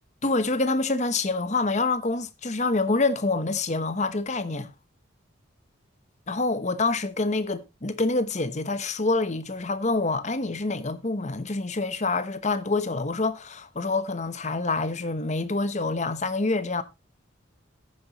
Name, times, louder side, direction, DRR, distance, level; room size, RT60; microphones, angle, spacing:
voice 1, 0.2-4.7 6.3-16.8, left 3 dB, 40° left, 1.0 m, -26 dB
14.0 x 10.0 x 3.0 m
head